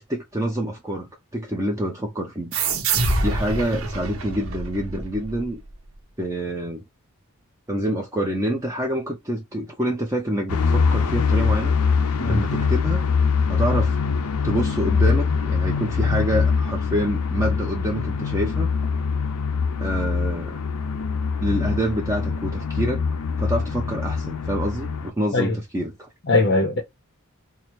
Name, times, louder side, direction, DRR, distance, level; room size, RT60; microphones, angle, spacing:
voice 1, 0.0-2.5 3.2-5.6 6.2-6.8 7.7-11.7 12.3-13.1 13.5-14.1 14.4-18.7 19.8-20.6 21.4-23.0 23.4-26.1, right 1 dB, 15° right, 0.5 m, -27 dB
sound 1, 2.5-5.7, right 3 dB, 70° right, 0.9 m, -26 dB
sound 2, 10.5-25.1, left 5 dB, 90° left, 0.6 m, -23 dB
voice 2, 26.3-26.8, left 2 dB, 50° left, 0.6 m, -20 dB
4.6 x 2.0 x 3.0 m
head